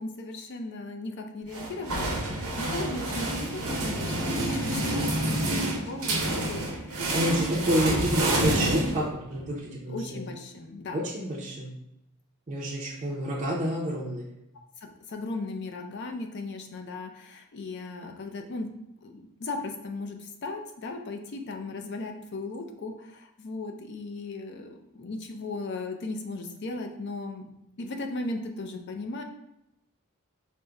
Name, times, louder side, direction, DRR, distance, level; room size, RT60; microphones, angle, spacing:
voice 1, 0.0-7.2 9.9-11.0 14.8-18.7 19.0-27.5 27.8-29.2, left 2 dB, 50° left, 4 dB, 0.5 m, -37 dB
sound 1, 1.5-9.4, right 1 dB, 85° right, 0.8 m, -28 dB
voice 2, 7.1-9.0 9.3-10.2 10.9-11.7 12.5-14.3, equal, 30° right, -4 dB, 0.5 m, -29 dB
5.0 x 2.1 x 3.4 m, 0.84 s
head